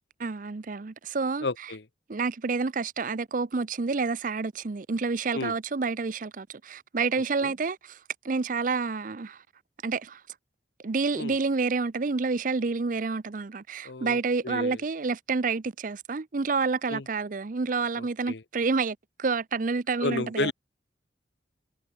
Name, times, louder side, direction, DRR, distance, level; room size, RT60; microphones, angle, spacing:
voice 1, 0.2-1.5 2.1-8.0 8.2-9.4 9.8-10.2 10.8-20.5, right 4 dB, 45° right, 0.6 m, -29 dB
voice 2, 1.4-1.8 5.3-5.5 7.4-7.5 11.1-11.4 13.8-14.2 14.4-14.8 16.9-17.0 18.0-18.4 20.0-20.5, left 3 dB, 70° left, 1.0 m, -32 dB
head